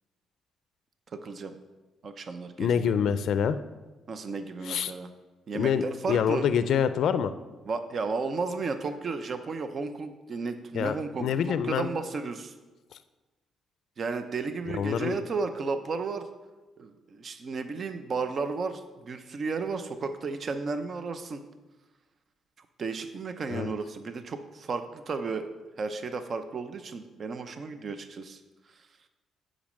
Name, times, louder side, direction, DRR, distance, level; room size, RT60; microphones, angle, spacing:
voice 1, 1.1-1.6 2.0-2.9 4.1-5.1 5.5-6.4 7.7-11.4 11.6-12.5 14.0-16.3 16.8-21.4 22.8-25.5 25.8-28.4 28.7-28.8, right 4 dB, 50° right, 9 dB, 0.7 m, -33 dB
voice 2, 2.6-3.6 4.7-4.9 5.5-7.3 10.7-11.9 14.7-15.2 23.5-23.7, left 8 dB, 70° left, 12 dB, 0.4 m, -26 dB
7.0 x 5.2 x 6.4 m, 1.2 s
cardioid pair, 90°, 0 cm